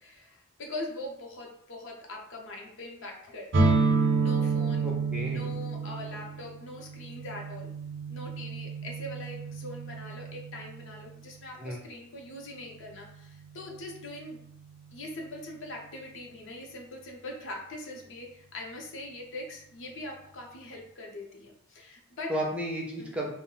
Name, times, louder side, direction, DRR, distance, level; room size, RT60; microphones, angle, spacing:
voice 1, 0.0-3.7 4.2-4.9 5.2-7.7 8.1-14.4 14.9-22.3 23.0-23.2, left 1 dB, 65° left, 1 dB, 0.6 m, -42 dB
sound 1, 3.5-11.1, right 4 dB, 60° right, 0.6 m, -29 dB
voice 2, 4.8-5.5 11.6-11.8 22.3-23.3, right 1 dB, 5° right, -2 dB, 0.4 m, -33 dB
2.3 x 2.1 x 3.7 m, 0.68 s
head